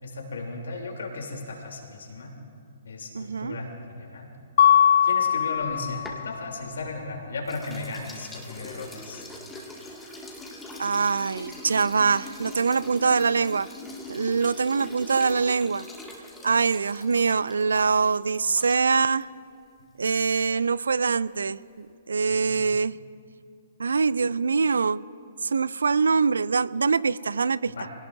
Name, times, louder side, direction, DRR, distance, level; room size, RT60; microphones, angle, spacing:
voice 1, 0.0-2.3 2.8-4.3 5.0-9.3 22.5-22.6 27.7-27.9, left 3 dB, 70° left, 1 dB, 3.3 m, -36 dB
voice 2, 3.1-3.6 10.8-13.7 14.1-15.9 16.4-19.3 20.0-22.9 23.8-25.0 25.4-27.7, right 5 dB, 75° right, 20 dB, 0.4 m, -24 dB
Mallet percussion, 4.6-6.4, left 9 dB, 55° left, 0.3 m, -20 dB
sound 1, 5.5-7.1 7.5-19.2, left 1 dB, 10° left, 2.2 m, -42 dB
25.5 x 18.0 x 2.7 m, 2.3 s
figure-of-eight pair, 120°, 0 cm